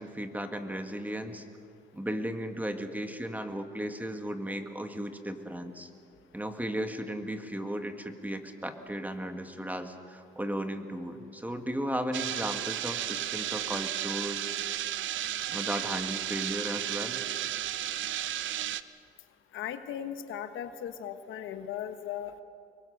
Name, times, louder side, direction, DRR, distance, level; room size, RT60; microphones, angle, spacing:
voice 1, 0.0-1.4 1.9-5.9 6.3-14.5 15.5-17.2, equal, 10° right, 6 dB, 1.9 m, -35 dB
sound 1, 12.1-18.8, right 12 dB, 75° right, 0.7 m, -33 dB
voice 2, 19.5-22.4, left 9 dB, 80° left, 9 dB, 1.3 m, -37 dB
25.0 x 22.0 x 6.6 m, 2.5 s
cardioid pair, 90°, 20 cm